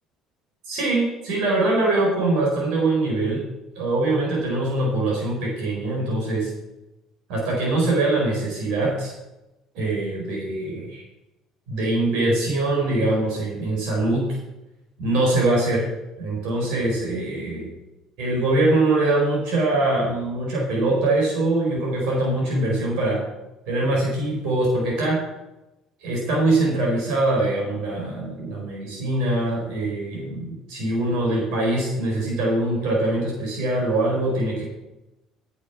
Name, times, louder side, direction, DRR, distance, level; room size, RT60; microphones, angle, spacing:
voice 1, 0.7-3.4 3.7-6.5 7.3-9.1 9.7-11.0 11.7-14.3 15.0-15.9 16.2-17.7 18.2-23.2 23.7-25.2 26.0-34.6, right 2 dB, 75° right, -3 dB, 4.9 m, -23 dB
9.1 x 8.3 x 6.1 m, 0.97 s
hypercardioid pair, 70°, 0 cm